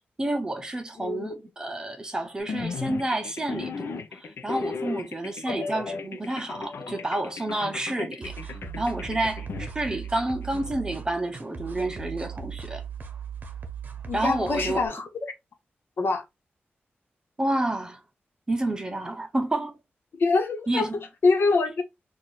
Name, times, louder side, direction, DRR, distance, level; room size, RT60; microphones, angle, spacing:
voice 1, 0.2-12.8 14.1-14.8 17.4-18.0 18.5-19.8 20.7-20.9, right 1 dB, 20° right, 0.7 m, -29 dB
voice 2, 1.0-1.3 5.5-5.6 8.0-8.1 14.1-15.1 16.0-16.2 20.1-20.9 21.2-21.8, left 3 dB, 70° left, 1.1 m, -24 dB
sound 1, 2.4-10.7, left 5 dB, 90° left, 0.6 m, -36 dB
sound 2, 8.2-14.9, right 7 dB, 45° right, 0.8 m, -38 dB
4.2 x 2.5 x 3.1 m
wide cardioid pair, 165°, 4 cm